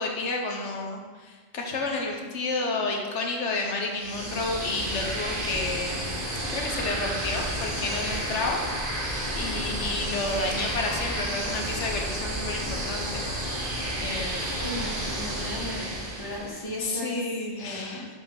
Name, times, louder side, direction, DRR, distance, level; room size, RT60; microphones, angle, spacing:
voice 1, 0.0-6.0 6.5-8.6 9.3-13.6 14.0-14.6 16.8-18.1, left 3 dB, 90° left, 1 dB, 1.4 m, -31 dB
sound 1, 3.9-16.7, right 1 dB, 50° right, 1.7 m, -31 dB
voice 2, 14.6-17.2 17.6-18.1, left 1 dB, 20° left, -2 dB, 1.4 m, -36 dB
6.7 x 5.6 x 6.5 m, 1.4 s
omnidirectional pair, 1.2 m